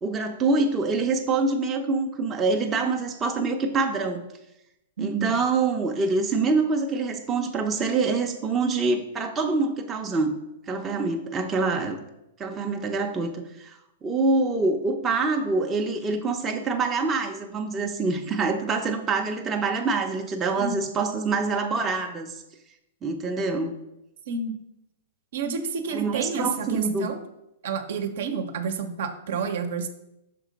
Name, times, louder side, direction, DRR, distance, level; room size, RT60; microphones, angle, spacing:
voice 1, 0.0-4.3 5.0-10.3 10.7-12.0 12.4-22.4 23.0-23.7 25.9-27.1, right 3 dB, 15° right, 2 dB, 0.5 m, -25 dB
voice 2, 5.0-5.4 20.6-20.8 24.3-24.5 25.3-27.2 27.6-29.9, right 5 dB, 65° right, 8 dB, 0.7 m, -29 dB
5.9 x 3.7 x 5.0 m, 0.86 s
hypercardioid pair, 150°, 0 cm